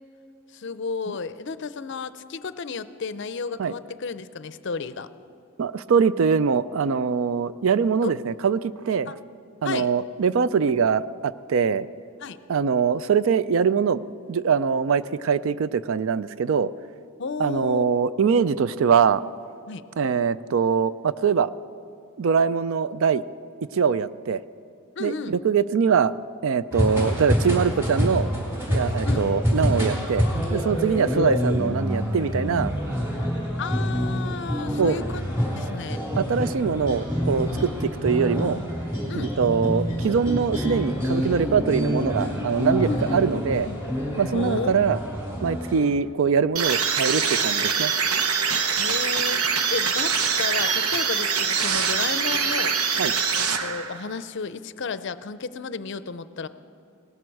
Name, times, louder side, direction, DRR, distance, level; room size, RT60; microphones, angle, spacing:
voice 1, 0.5-5.1 8.0-8.1 9.1-9.2 9.6-9.9 12.2-12.4 17.2-18.0 19.7-19.8 25.0-25.3 29.1-29.2 31.1-31.6 33.6-36.0 39.1-39.3 42.8-43.8 44.3-44.9 48.7-52.8 53.3-56.5, left 4 dB, 55° left, 14 dB, 0.5 m, -32 dB
voice 2, 5.6-9.1 9.6-11.9 12.5-14.0 14.3-16.7 17.4-19.2 20.0-21.5 22.2-23.2 23.7-24.4 25.0-26.1 26.4-28.3 28.7-30.2 30.5-32.7 34.8-35.0 36.2-38.6 39.2-43.7 44.2-45.0 45.4-47.9 53.0-53.1, right 6 dB, 65° right, 16 dB, 0.4 m, -23 dB
sound 1, 26.7-45.8, equal, 10° right, 3.2 m, -27 dB
sound 2, 46.6-54.1, right 6 dB, 85° right, 1.0 m, -24 dB
17.5 x 14.0 x 4.7 m, 2.6 s
head